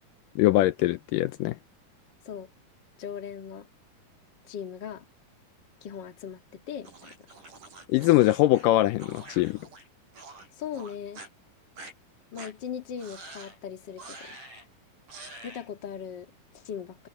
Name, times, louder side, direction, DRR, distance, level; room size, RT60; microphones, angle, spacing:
voice 1, 0.4-1.6 7.9-9.6, left 16 dB, 80° left, 2.1 m, -22 dB
voice 2, 3.0-3.7 4.4-5.1 5.8-7.1 10.6-11.2 12.3-14.4 15.4-17.1, left 8 dB, 40° left, 1.9 m, -39 dB
sound 1, 6.8-9.9 10.1-10.5 10.7-11.3 11.8-11.9 12.4-12.5 13.0-13.6 14.0-14.7 15.1-15.7, right 2 dB, 65° right, 6.8 m, -46 dB
omnidirectional pair, 4.0 m